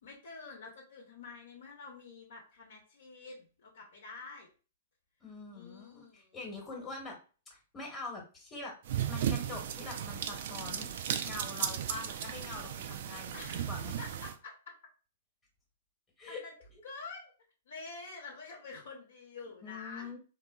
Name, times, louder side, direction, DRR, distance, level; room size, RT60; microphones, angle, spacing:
voice 1, 0.0-4.5 5.5-6.4 13.3-13.7 14.0-14.7 16.3-16.5 16.8-17.3 17.7-20.2, left 4 dB, 65° left, 0 dB, 0.8 m, -48 dB
voice 2, 5.2-7.2 7.5-8.7 9.1-10.9 11.2-14.0 16.2-16.4 19.6-20.2, left 3 dB, 20° left, -1 dB, 1.0 m, -44 dB
sound 1, 8.9-14.3, right 9 dB, 55° right, 0.3 m, -35 dB
3.3 x 2.4 x 2.2 m, 0.36 s
figure-of-eight pair, 110°, 0 cm